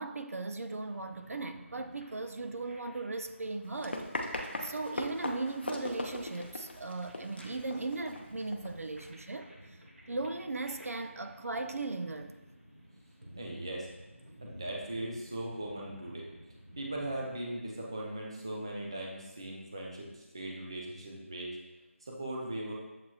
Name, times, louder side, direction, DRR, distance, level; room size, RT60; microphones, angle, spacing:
voice 1, 0.0-4.0 4.6-9.8 10.1-12.4, right 3 dB, 85° right, 7 dB, 0.4 m, -37 dB
sound 1, 0.8-17.3, equal, 65° right, 1.2 m, -55 dB
Run, 3.6-9.1, left 1 dB, 45° left, 0.6 m, -40 dB
voice 2, 13.4-13.9 14.4-16.3 16.8-21.6 22.0-22.7, right 1 dB, 20° right, -2 dB, 0.4 m, -39 dB
7.4 x 2.8 x 2.3 m, 1.1 s
figure-of-eight pair, 175°, 8 cm